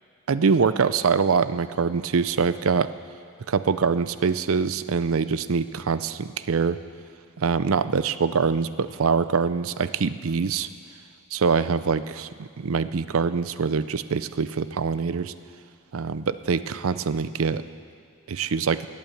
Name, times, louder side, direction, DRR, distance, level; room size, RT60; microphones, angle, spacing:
voice 1, 0.3-2.9 3.5-6.8 7.4-10.7 11.3-15.3 15.9-17.6 18.3-18.9, right 5 dB, 70° right, 14 dB, 0.5 m, -24 dB
18.0 x 8.6 x 7.3 m, 2.3 s
head